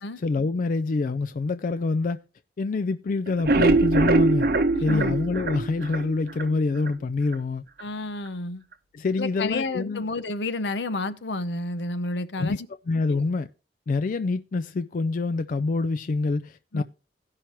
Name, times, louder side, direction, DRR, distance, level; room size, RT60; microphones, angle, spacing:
voice 1, 0.2-2.2 2.6-4.5 4.8-7.6 8.9-10.0 12.4-12.6 12.9-13.5 13.9-16.8, left 3 dB, 45° left, 0.3 m, -26 dB
sound 1, 3.3-6.5 6.9-7.0 7.3-7.4 7.8-7.9, right 2 dB, 55° right, 0.7 m, -22 dB
voice 2, 4.7-5.2 7.8-8.6 9.2-12.7 13.1-13.2 16.7-16.8, left 2 dB, 75° left, 0.8 m, -30 dB
17.0 x 5.8 x 3.0 m
head